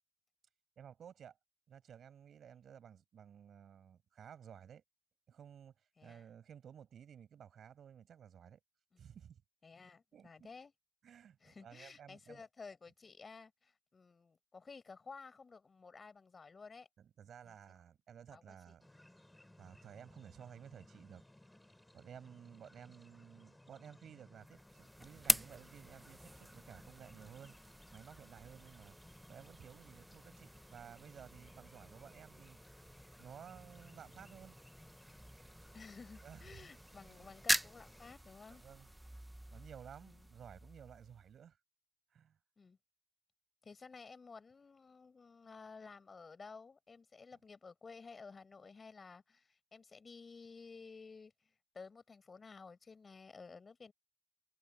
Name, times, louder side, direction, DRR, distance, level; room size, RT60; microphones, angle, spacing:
voice 1, 0.8-1.4 1.7-4.8 5.3-8.6 9.0-9.4 10.1-10.5 11.0-12.4 17.0-18.9 19.6-21.2 21.9-27.5 27.9-28.9 29.3-32.6 33.2-34.6 36.2-36.7 37.0-37.3 38.5-38.9 39.5-41.6 42.1-42.4, right 8 dB, 75° right, 6.5 m, -55 dB
voice 2, 9.6-10.7 11.4-16.9 17.4-17.5 18.3-18.7 35.7-38.6 40.0-40.3 42.6-42.8 43.6-53.9, left 4 dB, 35° left, 4.4 m, -54 dB
sound 1, 18.8-38.2, left 1 dB, 10° left, 3.8 m, -61 dB
sound 2, 24.4-41.4, right 1 dB, 5° right, 0.5 m, -43 dB
wide cardioid pair, 135°, 0 cm